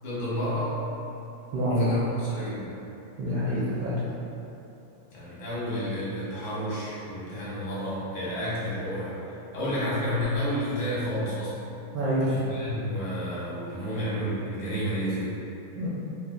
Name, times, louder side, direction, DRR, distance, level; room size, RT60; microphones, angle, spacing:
voice 1, 0.0-0.7 1.7-2.8 5.1-9.2 9.5-11.7 12.2-15.3, equal, 60° left, -9 dB, 1.4 m, -31 dB
voice 2, 1.5-2.0 3.2-4.0 11.9-12.3 15.7-15.9, equal, 75° right, -9 dB, 1.3 m, -26 dB
4.0 x 2.1 x 2.4 m, 2.8 s
omnidirectional pair, 2.4 m